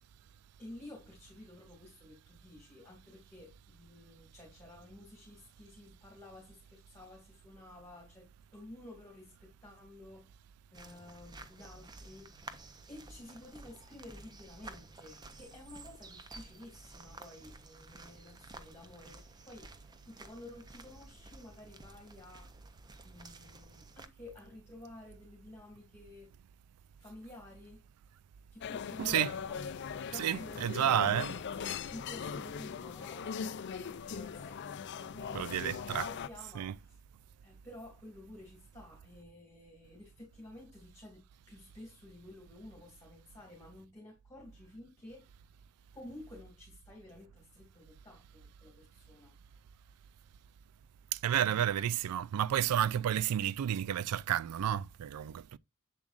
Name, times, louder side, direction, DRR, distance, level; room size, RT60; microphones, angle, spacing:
voice 1, 0.6-10.4 10.7-19.7 20.0-22.6 23.0-26.3 27.0-27.8 28.5-29.6 29.9-30.6 31.9-34.7 34.9-37.0 37.4-45.3 45.9-49.3 51.4-51.8, left 1 dB, 10° left, 2.3 m, -52 dB
sound 1, 10.7-24.1, right 2 dB, 20° right, 0.5 m, -52 dB
sound 2, 28.6-36.3, left 7 dB, 50° left, 0.4 m, -40 dB
voice 2, 29.0-29.3 30.2-31.4 35.3-36.1 36.6-36.7 51.1-55.6, right 10 dB, 85° right, 0.3 m, -31 dB
7.5 x 7.1 x 2.5 m
head